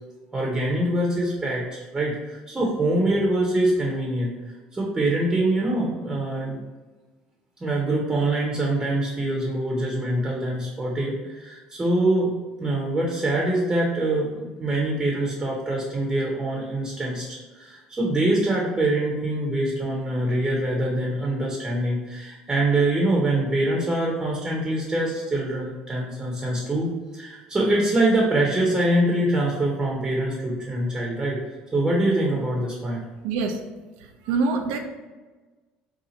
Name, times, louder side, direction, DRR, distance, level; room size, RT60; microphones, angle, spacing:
voice 1, 0.3-4.3 4.7-6.6 7.6-12.3 12.6-31.4 31.7-33.0, right 1 dB, 20° right, -3 dB, 0.7 m, -24 dB
voice 2, 33.2-33.6 34.2-34.8, right 4 dB, 80° right, 5 dB, 0.4 m, -24 dB
2.7 x 2.4 x 3.9 m, 1.2 s
supercardioid pair, 105°, 3 cm